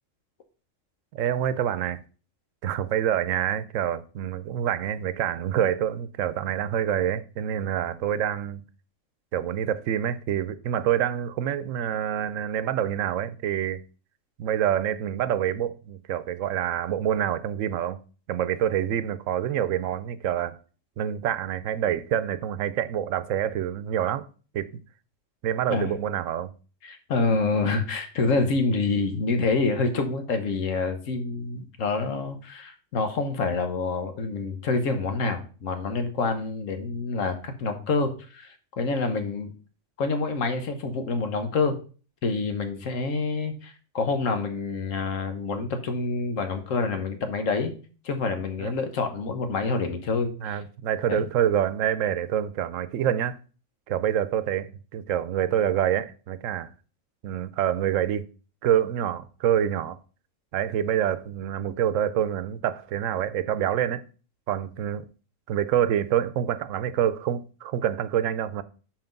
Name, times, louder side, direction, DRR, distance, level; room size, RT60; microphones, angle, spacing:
voice 1, 1.1-2.0 2.6-8.6 9.3-13.8 14.4-18.0 18.3-20.6 21.0-24.3 24.5-24.7 25.4-26.5 48.6-48.7 50.4-53.4 53.9-56.7 57.2-58.3 58.6-60.0 60.5-64.0 64.5-65.0 65.5-68.6, right 10 dB, 85° right, 1.0 m, -26 dB
voice 2, 26.8-39.5 40.0-41.8 42.2-47.7 48.0-50.6 51.1-51.3, left 3 dB, 85° left, 1.4 m, -27 dB
5.8 x 4.9 x 5.2 m
omnidirectional pair, 1.3 m